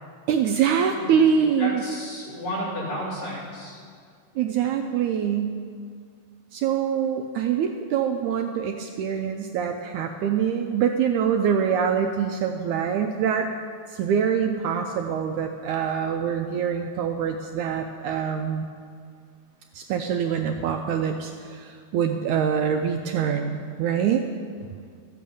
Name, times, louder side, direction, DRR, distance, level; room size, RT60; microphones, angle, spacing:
voice 1, 0.3-1.8 4.4-5.6 6.5-13.5 13.9-18.7 19.7-24.2, right 7 dB, 80° right, 4 dB, 1.8 m, -24 dB
voice 2, 0.9-1.3 1.6-3.8, equal, 65° left, -7 dB, 5.3 m, -32 dB
14.0 x 8.3 x 7.0 m, 2.2 s
omnidirectional pair, 4.0 m